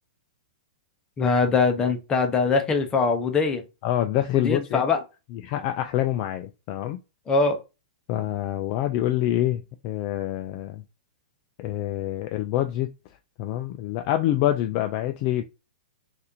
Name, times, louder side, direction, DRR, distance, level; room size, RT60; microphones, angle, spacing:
voice 1, 1.2-3.6 4.3-5.0 7.3-7.6, left 4 dB, 15° left, 0.7 m, -22 dB
voice 2, 3.8-4.8 5.4-7.0 8.1-10.8 11.6-12.9 13.4-15.4, left 13 dB, 35° left, 0.4 m, -26 dB
4.1 x 2.5 x 2.7 m
hypercardioid pair, 140°, 5 cm